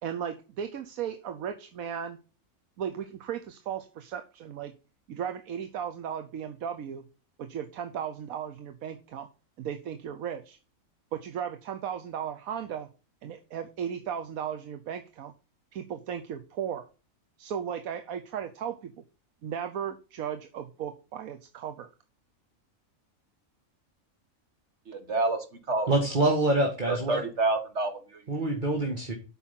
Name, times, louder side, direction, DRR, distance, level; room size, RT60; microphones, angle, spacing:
voice 1, 0.0-2.2 2.8-4.7 5.1-7.1 7.4-9.3 9.6-10.6 11.1-12.9 13.2-15.3 15.7-16.9 17.4-18.9 19.4-21.9, right 8 dB, 85° right, 8 dB, 1.3 m, -36 dB
voice 2, 24.9-25.9 26.9-28.2, right 2 dB, 55° right, 7 dB, 1.9 m, -28 dB
voice 3, 25.9-27.2 28.3-29.1, right 2 dB, 35° right, 1 dB, 1.9 m, -25 dB
8.3 x 5.9 x 5.7 m, 0.33 s
omnidirectional pair, 1.4 m